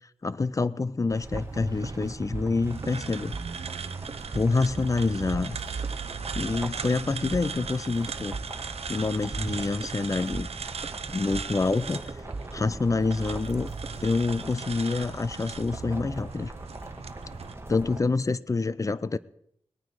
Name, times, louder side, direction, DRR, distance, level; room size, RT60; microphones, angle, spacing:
voice 1, 0.2-3.3 4.3-5.6 6.3-8.4 8.9-10.5 11.1-12.0 12.5-13.7 14.0-16.5 17.7-19.2, left 3 dB, 30° left, 17 dB, 0.5 m, -27 dB
sound 1, 1.0-14.0, right 3 dB, 40° right, 0.8 m, -39 dB
sound 2, 1.1-18.0, right 1 dB, 25° right, 1.7 m, -43 dB
sound 3, 2.6-17.5, right 6 dB, 75° right, 0.7 m, -38 dB
20.0 x 9.4 x 4.8 m, 0.71 s
wide cardioid pair, 90°, 10 cm